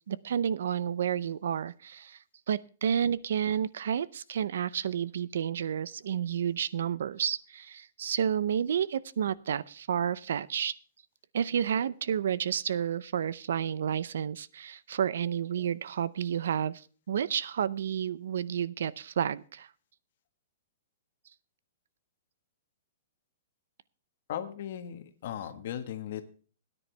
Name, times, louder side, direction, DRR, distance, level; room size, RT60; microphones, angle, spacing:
voice 1, 0.1-2.2 2.5-10.8 11.3-19.7, right 8 dB, 70° right, 19 dB, 0.6 m, -30 dB
voice 2, 24.3-26.2, left 10 dB, 50° left, 8 dB, 1.5 m, -37 dB
17.5 x 10.0 x 3.4 m, 0.40 s
hypercardioid pair, 170°, 0 cm